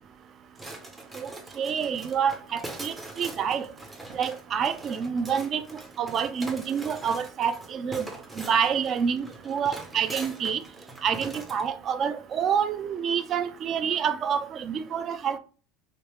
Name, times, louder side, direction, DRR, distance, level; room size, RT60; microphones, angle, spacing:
sound 1, 0.6-11.7, right 2 dB, 15° right, 0.7 m, -42 dB
voice 1, 1.6-3.7 4.1-5.6 6.0-8.1 8.4-10.6 11.0-15.4, right 7 dB, 35° right, 0.3 m, -27 dB
3.1 x 2.9 x 3.1 m
supercardioid pair, 125°, 0 cm